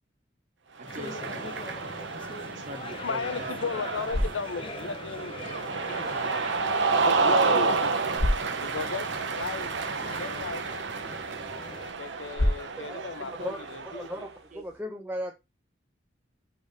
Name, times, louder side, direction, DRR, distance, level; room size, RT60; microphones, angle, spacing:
voice 1, 0.8-1.7 2.5-3.8 13.2-13.5 14.0-14.2 14.5-14.6, right 1 dB, 40° right, 1.0 m, -43 dB
Cheering, 0.8-14.2, right 4 dB, 70° right, 0.8 m, -30 dB
sound 1, 0.9-11.9, left 3 dB, 30° left, 0.6 m, -43 dB
voice 2, 3.0-6.4 6.9-7.9 8.6-10.6 12.0-14.3, left 5 dB, 80° left, 0.6 m, -36 dB
sound 2, 3.7-14.8, left 1 dB, 55° left, 1.4 m, -36 dB
voice 3, 13.9-14.3 14.5-15.3, equal, 10° right, 0.6 m, -35 dB
6.3 x 3.5 x 5.3 m
head